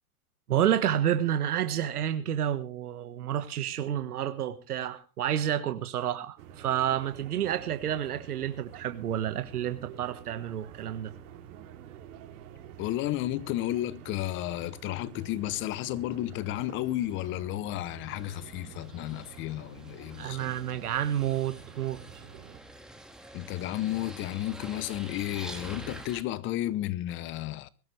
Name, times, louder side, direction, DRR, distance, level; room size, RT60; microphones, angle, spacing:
voice 1, 0.5-11.1 20.2-22.2, right 10 dB, 90° right, 1.5 m, -30 dB
sound 1, 6.4-22.6, right 9 dB, 60° right, 3.6 m, -48 dB
voice 2, 12.8-20.5 23.3-27.7, left 15 dB, 25° left, 0.7 m, -32 dB
sound 2, 18.1-26.2, right 1 dB, ahead, 1.8 m, -47 dB
22.0 x 13.5 x 3.3 m
hypercardioid pair, 135°, 44 cm